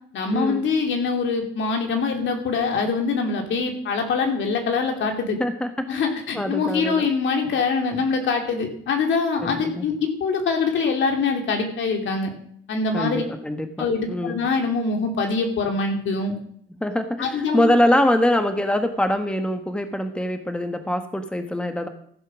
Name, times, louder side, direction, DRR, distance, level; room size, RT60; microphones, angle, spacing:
voice 1, 0.1-5.4 5.9-12.3 12.7-13.2 13.8-16.3 17.2-17.7, left 4 dB, 70° left, 4 dB, 2.8 m, -24 dB
voice 2, 5.4-6.1 6.3-7.1 9.4-9.9 12.9-14.4 16.8-21.9, left 1 dB, 5° left, 7 dB, 1.3 m, -24 dB
15.0 x 7.5 x 6.2 m, 0.64 s
cardioid pair, 90°, 20 cm